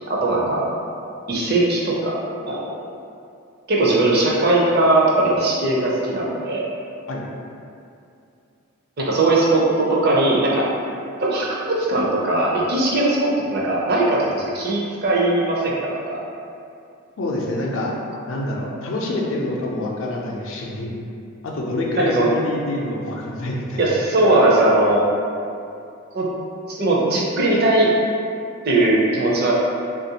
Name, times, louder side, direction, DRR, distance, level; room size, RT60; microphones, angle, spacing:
voice 1, 0.1-0.6 1.3-2.2 2.5-2.7 3.7-6.7 9.0-10.7 11.2-16.2 22.0-22.3 23.8-25.1 26.1-26.3 26.7-27.9 28.6-29.5, right 2 dB, 45° right, -4 dB, 0.5 m, -19 dB
voice 2, 17.2-17.9 18.3-20.9 21.4-23.8, left 1 dB, 60° left, -2 dB, 0.4 m, -26 dB
3.2 x 2.4 x 2.8 m, 2.6 s
head